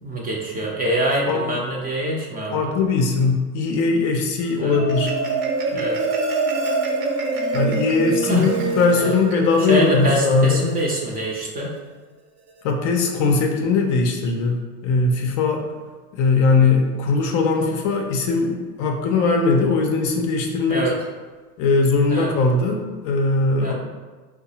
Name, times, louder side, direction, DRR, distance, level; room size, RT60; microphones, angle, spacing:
voice 1, 0.0-2.7 4.6-4.8 5.7-6.0 8.3-8.5 9.0-9.2 9.6-11.7 20.7-20.9 22.1-22.3 23.6-23.7, equal, 20° right, -3 dB, 0.5 m, -24 dB
voice 2, 2.5-5.2 7.5-10.7 12.6-15.6 16.1-20.8 21.6-23.7, left 4 dB, 45° left, 2 dB, 0.5 m, -20 dB
Marimba xylophone, 4.4-11.1, right 3 dB, 60° right, 0.9 m, -25 dB
4.5 x 2.0 x 2.8 m, 1.4 s
hypercardioid pair, 90°, 46 cm